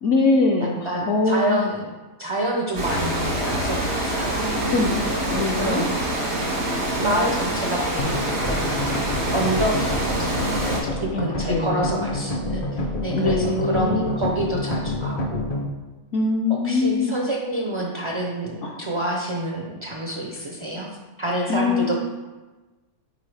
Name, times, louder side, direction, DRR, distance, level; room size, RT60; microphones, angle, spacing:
voice 1, 0.0-1.6 4.6-4.9 5.3-5.9 11.1-12.1 13.1-14.3 16.1-17.1 18.6-18.8 21.5-21.9, left 3 dB, 65° left, 0 dB, 0.9 m, -23 dB
voice 2, 0.6-1.9 2.2-5.9 7.0-10.5 11.0-15.4 16.5-20.9 21.2-22.0, right 1 dB, 45° right, -1 dB, 0.4 m, -28 dB
Water, 2.7-10.8, right 1 dB, 85° right, 2.1 m, -25 dB
sound 1, 8.0-15.7, left 1 dB, 45° left, 0.5 m, -28 dB
8.9 x 3.9 x 3.3 m, 1.2 s
omnidirectional pair, 1.5 m